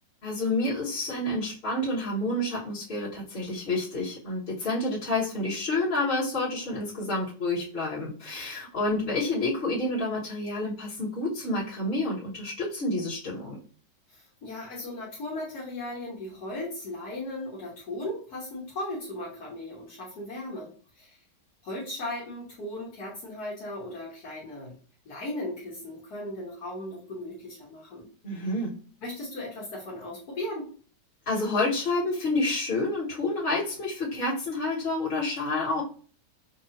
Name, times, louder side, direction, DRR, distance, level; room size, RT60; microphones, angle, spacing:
voice 1, 0.2-13.6 28.2-28.7 31.3-35.8, left 2 dB, 35° left, -7 dB, 1.7 m, -29 dB
voice 2, 14.1-21.2 21.6-24.8 25.0-28.1 29.0-30.7, left 1 dB, 60° left, -5 dB, 1.7 m, -37 dB
5.8 x 2.4 x 2.7 m, 0.41 s
omnidirectional pair, 1.9 m